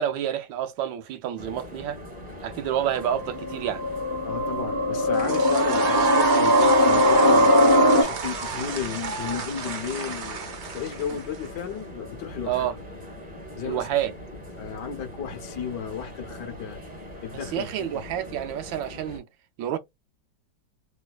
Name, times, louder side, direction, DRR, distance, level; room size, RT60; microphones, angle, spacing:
voice 1, 0.0-2.0 2.4-3.8 12.5-12.8 13.6-14.1 17.5-19.2 19.6-19.8, right 10 dB, 85° right, 1.3 m, -28 dB
sound 1, 1.4-19.2, left 1 dB, 25° right, 0.9 m, -41 dB
sound 2, 2.9-8.0, left 1 dB, 25° left, 0.5 m, -20 dB
voice 2, 4.2-10.4 10.7-12.7 13.6-13.9 14.6-16.8 17.2-18.0, left 7 dB, 70° left, 1.4 m, -34 dB
sound 3, 5.1-11.5, right 5 dB, 65° right, 0.7 m, -28 dB
3.2 x 3.0 x 2.3 m
omnidirectional pair, 2.0 m